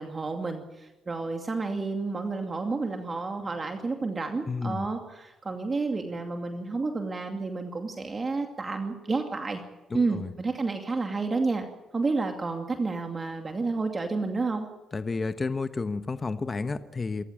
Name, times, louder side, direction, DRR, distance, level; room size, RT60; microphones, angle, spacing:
voice 1, 0.0-9.6 9.9-11.7 11.9-14.7, right 3 dB, 30° right, 4 dB, 2.4 m, -30 dB
voice 2, 4.5-4.9 9.9-10.3 14.9-17.2, left 4 dB, 30° left, 10 dB, 1.1 m, -31 dB
28.5 x 14.0 x 8.8 m, 1.1 s
cardioid pair, 90°, 0 cm